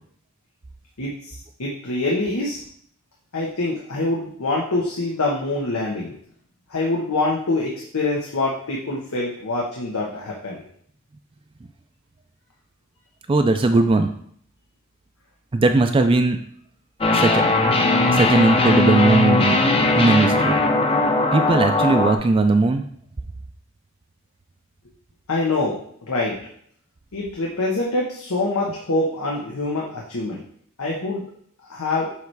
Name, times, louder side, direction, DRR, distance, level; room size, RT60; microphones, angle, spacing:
voice 1, 1.0-2.6 3.3-6.2 6.7-10.7 25.3-25.8 26.1-26.4 27.1-30.4 30.8-31.2 31.6-32.1, left 2 dB, 90° left, -3 dB, 1.0 m, -25 dB
voice 2, 13.3-14.1 15.5-16.4 17.1-17.4 18.1-19.6 20.0-20.5 21.3-22.8, right 2 dB, 25° right, 6 dB, 0.4 m, -18 dB
sound 1, 17.0-22.2, left 2 dB, 25° left, 0.6 m, -19 dB
6.9 x 3.3 x 4.6 m, 0.62 s
head